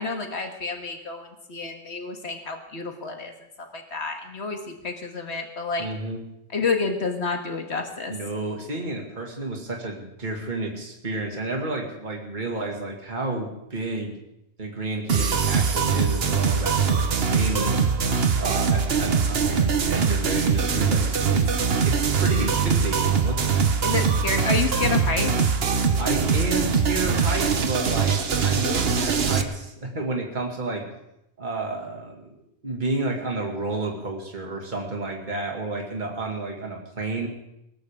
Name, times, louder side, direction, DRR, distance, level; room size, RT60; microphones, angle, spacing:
voice 1, 0.0-3.3 3.6-5.9 6.5-8.1 23.8-25.4, left 4 dB, 75° left, 4 dB, 1.8 m, -29 dB
voice 2, 5.8-6.2 8.1-14.2 14.6-17.8 18.4-23.6 26.0-30.9 31.4-32.3 32.6-37.3, right 2 dB, 45° right, 0 dB, 2.3 m, -31 dB
sound 1, 15.1-29.4, right 6 dB, 65° right, 1.3 m, -22 dB
20.5 x 18.0 x 3.7 m, 0.82 s
omnidirectional pair, 1.1 m